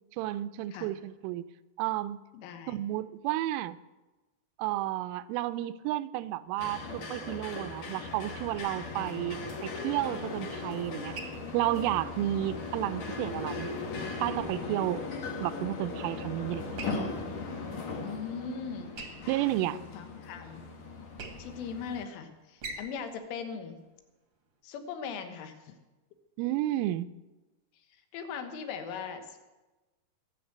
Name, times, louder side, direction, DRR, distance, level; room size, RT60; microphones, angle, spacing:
voice 1, 0.2-1.5 1.8-2.2 2.7-3.8 4.6-11.2 11.5-13.7 14.2-15.1 15.4-16.9 19.3-19.8 26.4-27.1, right 14 dB, 90° right, 13 dB, 3.2 m, -32 dB
voice 2, 2.3-2.8 9.0-9.5 12.2-12.3 18.0-18.9 19.7-20.7 21.4-23.8 24.6-25.8 28.1-29.4, left 6 dB, 80° left, 7 dB, 3.8 m, -40 dB
sound 1, 6.6-22.0, left 3 dB, 60° left, 1.9 m, -38 dB
sound 2, 8.5-24.6, right 3 dB, 50° right, 1.6 m, -50 dB
19.5 x 7.3 x 8.0 m, 1.1 s
omnidirectional pair, 5.6 m